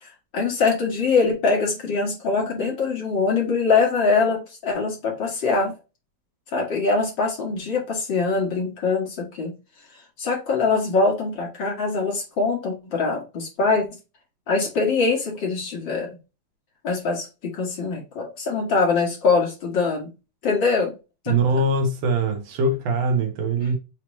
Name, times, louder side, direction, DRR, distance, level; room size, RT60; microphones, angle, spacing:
voice 1, 0.0-5.8 6.5-9.5 10.2-13.9 14.5-16.2 16.8-20.1 20.4-20.9 21.2-21.3, left 4 dB, 55° left, 1.3 m, -23 dB
voice 2, 21.3-23.8, right 2 dB, 85° right, 1.4 m, -22 dB
5.8 x 3.0 x 3.1 m
omnidirectional pair, 4.2 m